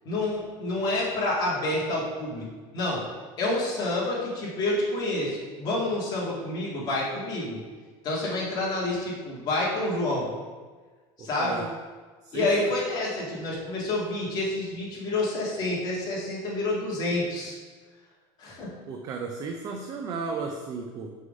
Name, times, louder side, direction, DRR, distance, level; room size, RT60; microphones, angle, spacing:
voice 1, 0.0-2.5 2.7-3.0 3.4-7.6 8.0-10.3 11.2-11.7 12.3-17.5 18.4-18.7, left 2 dB, 35° left, -5 dB, 1.9 m, -28 dB
voice 2, 11.2-11.7 12.3-12.7 18.9-21.1, right 4 dB, 30° right, 3 dB, 0.4 m, -34 dB
6.3 x 3.7 x 5.2 m, 1.4 s
cardioid pair, 165°, 12 cm